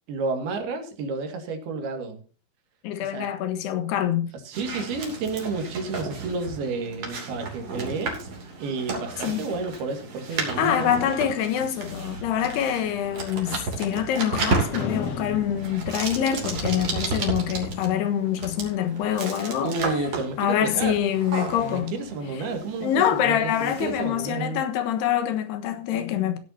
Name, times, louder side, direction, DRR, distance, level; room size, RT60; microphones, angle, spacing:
voice 1, 0.1-2.2 3.0-3.3 4.5-8.3 8.6-11.1 19.6-21.0 21.6-24.6, right 4 dB, 70° right, 4.0 m, -31 dB
voice 2, 2.8-4.3 9.2-9.4 10.6-19.7 20.4-21.9 22.8-26.4, left 10 dB, 90° left, 3.4 m, -25 dB
sound 1, 4.5-24.3, right 3 dB, 40° right, 3.6 m, -33 dB
sound 2, 10.9-14.4 14.7-17.4, left 5 dB, 60° left, 1.7 m, -38 dB
16.0 x 11.0 x 2.8 m
omnidirectional pair, 4.6 m